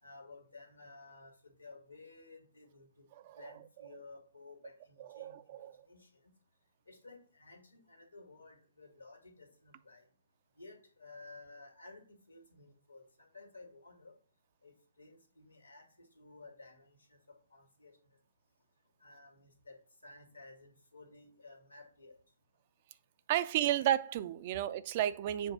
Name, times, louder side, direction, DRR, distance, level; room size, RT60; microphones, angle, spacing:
voice 1, 0.0-3.1 3.4-6.3 6.9-10.1 10.6-14.1 14.6-17.2 17.5-17.9 19.0-19.8 20.0-22.2 23.7-23.8, left 3 dB, 80° left, 1.9 m, -55 dB
voice 2, 3.2-3.5 5.0-5.8 23.3-25.5, right 12 dB, 35° right, 0.4 m, -33 dB
7.1 x 2.6 x 5.7 m
figure-of-eight pair, 125°, 0 cm